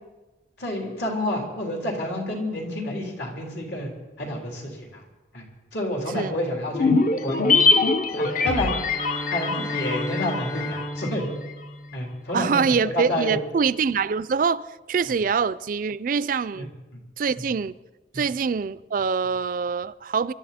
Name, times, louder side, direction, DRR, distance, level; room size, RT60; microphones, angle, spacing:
voice 1, 0.6-3.9 4.2-5.0 5.3-5.4 5.7-6.9 7.2-7.6 8.2-8.7 9.3-11.3 11.9-13.4 16.5-16.6 18.1-18.2, left 1 dB, 70° left, 3.7 m, -29 dB
sound 1, 6.7-11.2 11.5-11.6, left 4 dB, 50° left, 0.9 m, -23 dB
sound 2, 8.2-12.7, left 1 dB, 15° left, 0.5 m, -35 dB
voice 2, 12.3-14.6 14.9-16.7 17.2-17.7 18.1-20.3, right 5 dB, 50° right, 0.4 m, -24 dB
24.0 x 12.0 x 4.3 m
head